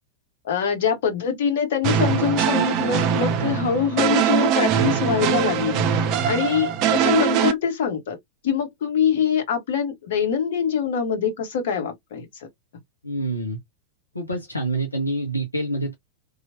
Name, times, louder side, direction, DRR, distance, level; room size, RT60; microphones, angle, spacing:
voice 1, 0.4-8.2 8.4-12.3, left 7 dB, 55° left, 1.1 m, -24 dB
sound 1, 1.8-7.5, right 8 dB, 40° right, 0.5 m, -22 dB
voice 2, 13.0-13.6 14.1-16.0, right 2 dB, 80° left, 0.7 m, -26 dB
3.0 x 2.4 x 2.6 m
figure-of-eight pair, 90°, 0 cm